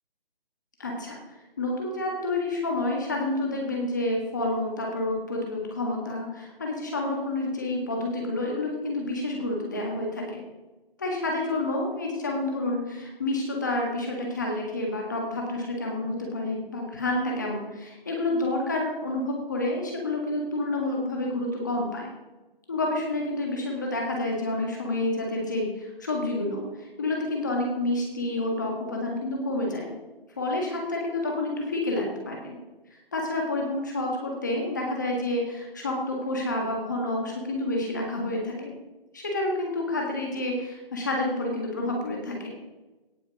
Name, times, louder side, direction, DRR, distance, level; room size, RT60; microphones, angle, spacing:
voice 1, 0.8-1.2 1.6-10.4 11.0-22.1 22.7-29.9 30.4-32.6 32.9-38.7 39.1-42.5, left 2 dB, 20° left, 0 dB, 1.7 m, -29 dB
17.5 x 6.4 x 5.2 m, 1.1 s
hypercardioid pair, 180°, 29 cm